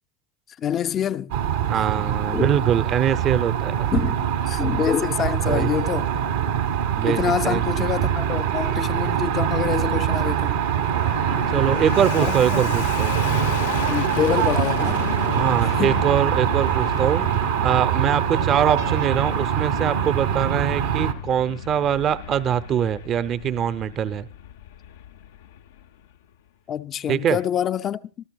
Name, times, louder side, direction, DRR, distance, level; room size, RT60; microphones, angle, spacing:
voice 1, 0.6-1.3 2.3-2.6 3.9-6.1 7.0-10.6 12.2-12.8 13.9-15.0 15.8-15.9 26.7-28.0, left 9 dB, 35° left, 0.6 m, -26 dB
sound 1, 1.3-21.1, right 9 dB, 75° right, 1.4 m, -23 dB
voice 2, 1.7-3.9 5.5-5.7 6.9-7.6 11.5-13.1 15.3-17.3 17.6-24.3 27.1-27.4, right 9 dB, 40° right, 0.8 m, -23 dB
Fixed-wing aircraft airplane, 9.8-26.2, left 9 dB, 75° left, 0.7 m, -34 dB
26.0 x 14.0 x 2.4 m
hypercardioid pair, 90°, 0 cm